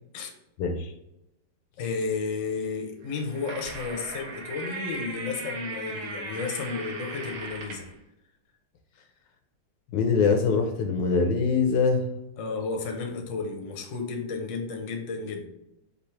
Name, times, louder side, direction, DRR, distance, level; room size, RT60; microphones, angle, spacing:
voice 1, 0.6-0.9 9.9-12.0, left 4 dB, 75° left, 4 dB, 1.2 m, -23 dB
voice 2, 1.8-7.9 12.4-15.4, left 4 dB, 55° left, 2 dB, 1.0 m, -32 dB
sound 1, 3.1-7.9, right 3 dB, 65° right, 1.3 m, -38 dB
5.2 x 2.8 x 3.1 m, 0.86 s
omnidirectional pair, 2.0 m